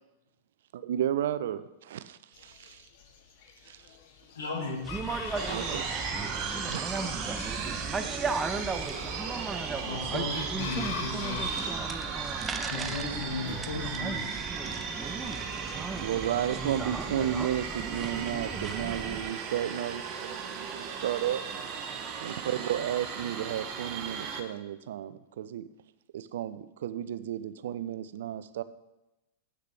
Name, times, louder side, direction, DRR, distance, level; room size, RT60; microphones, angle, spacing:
voice 1, 0.7-2.9 3.7-3.8 5.5-5.8 6.7-6.8 16.0-21.4 22.2-25.7 26.1-28.6, right 10 dB, 65° right, 13 dB, 0.6 m, -33 dB
Chicken rooster, 2.3-18.9, left 5 dB, 55° left, 1.5 m, -46 dB
voice 2, 4.3-4.8 5.2-5.3 7.3-7.4 8.9-9.4 9.8-11.8 12.7-14.2, left 3 dB, 85° left, -3 dB, 2.1 m, -36 dB
sound 1, 4.8-19.3, right 4 dB, 15° right, 0.7 m, -36 dB
voice 3, 5.3-7.4, left 3 dB, 35° left, 1 dB, 1.9 m, -48 dB
sound 2, 5.3-24.4, right 6 dB, 40° right, 1.3 m, -36 dB
8.4 x 6.6 x 6.6 m, 0.96 s
hypercardioid pair, 100°, 0 cm